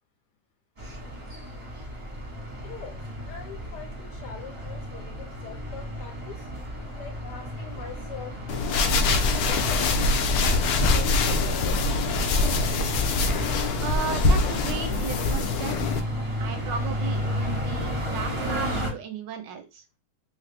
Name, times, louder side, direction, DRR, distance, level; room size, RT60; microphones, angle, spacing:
sound 1, 0.8-18.9, equal, 25° right, 0.7 m, -33 dB
voice 1, 2.6-6.5 6.9-8.4 8.6-9.8 10.7-12.1, left 6 dB, 70° left, 1.2 m, -43 dB
sound 2, 8.5-16.0, left 3 dB, 85° left, 0.8 m, -24 dB
voice 2, 13.8-16.0 16.4-19.8, right 7 dB, 75° right, 1.2 m, -35 dB
3.2 x 2.6 x 3.3 m
omnidirectional pair, 2.2 m